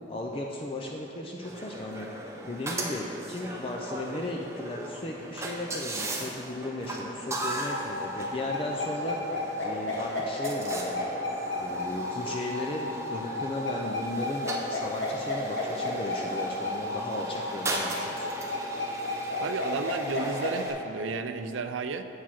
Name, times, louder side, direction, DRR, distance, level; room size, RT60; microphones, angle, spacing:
voice 1, 0.1-2.1 2.4-9.2 9.6-11.1 11.5-18.3, left 2 dB, 30° left, 0 dB, 0.5 m, -36 dB
sound 1, 1.4-20.7, right 1 dB, 15° right, 0.6 m, -38 dB
sound 2, 7.7-20.7, left 2 dB, 75° left, 1.5 m, -32 dB
voice 2, 19.4-22.1, right 4 dB, 85° right, 9 dB, 0.4 m, -32 dB
8.4 x 4.7 x 5.8 m, 2.9 s
head